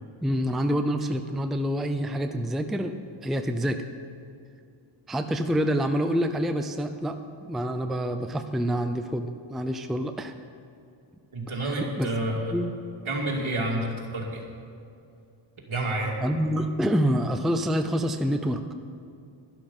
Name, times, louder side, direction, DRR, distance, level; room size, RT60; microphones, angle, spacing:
voice 1, 0.2-3.9 5.1-7.2 7.5-10.3 11.6-12.1 12.5-12.7 16.2-18.7, equal, ahead, 7 dB, 0.5 m, -27 dB
voice 2, 11.3-12.6 13.1-14.4 15.7-16.2, right 1 dB, 70° right, -1 dB, 2.5 m, -29 dB
11.5 x 11.5 x 5.5 m, 2.5 s
wide cardioid pair, 105°, 50 cm